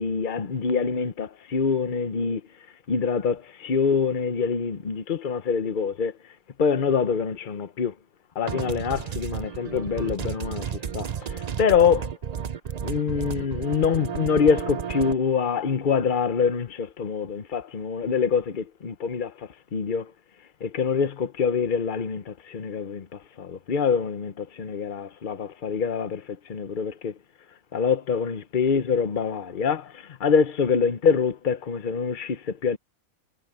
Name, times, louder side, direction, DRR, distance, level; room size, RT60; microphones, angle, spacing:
voice 1, 0.0-2.4 2.9-6.1 6.6-7.9 8.3-12.1 12.8-20.1 20.6-27.1 27.7-32.8, left 6 dB, 40° left, 1.0 m, -25 dB
sound 1, 8.5-15.1, right 8 dB, 75° right, 0.3 m, -32 dB
omnidirectional pair, 1.6 m